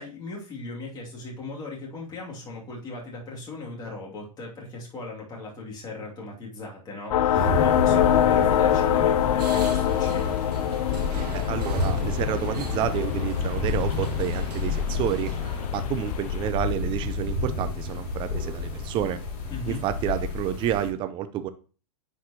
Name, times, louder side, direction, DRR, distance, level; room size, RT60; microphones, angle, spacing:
voice 1, 0.0-10.4 19.5-19.8, left 2 dB, 20° left, -3 dB, 2.6 m, -38 dB
sound 1, 7.1-16.5, left 10 dB, 65° left, 0.5 m, -25 dB
sound 2, 7.3-20.9, left 3 dB, 45° left, 3.0 m, -30 dB
sound 3, 9.4-15.7, right 5 dB, 80° right, 1.9 m, -41 dB
voice 2, 11.3-15.3 15.7-19.2 19.7-21.5, right 10 dB, 25° right, 11 dB, 0.5 m, -29 dB
9.6 x 4.7 x 2.9 m, 0.37 s
hypercardioid pair, 130°, 20 cm